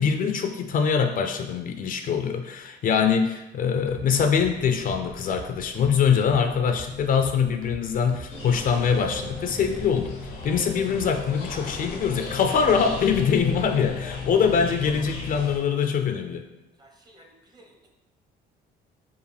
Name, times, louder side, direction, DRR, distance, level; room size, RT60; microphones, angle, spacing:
voice 1, 0.0-16.5, left 6 dB, 50° left, 6 dB, 0.4 m, -23 dB
sound 1, 3.9-11.4, right 4 dB, 50° right, 0.7 m, -43 dB
sound 2, 8.3-15.6, left 4 dB, 90° left, 0.7 m, -35 dB
voice 2, 16.8-17.9, right 1 dB, 20° right, 2 dB, 0.8 m, -54 dB
4.9 x 2.4 x 3.3 m, 0.98 s
supercardioid pair, 85°, 19 cm